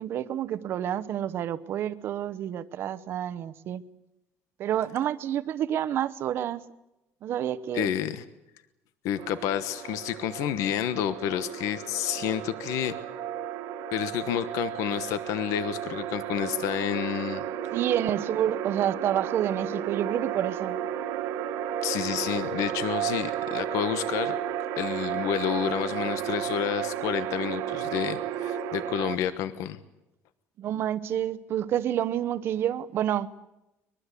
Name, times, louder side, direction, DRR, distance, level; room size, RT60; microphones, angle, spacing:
voice 1, 0.0-3.8 4.6-6.6 7.2-7.9 17.7-20.8 30.6-33.3, right 10 dB, 45° right, 0.9 m, -29 dB
voice 2, 7.7-8.2 9.0-12.9 13.9-17.4 21.8-24.3 24.8-29.8, left 10 dB, 75° left, 1.2 m, -29 dB
sound 1, 9.2-29.1, right 10 dB, 85° right, 1.7 m, -33 dB
23.5 x 22.0 x 8.4 m
cardioid pair, 180°, 6 cm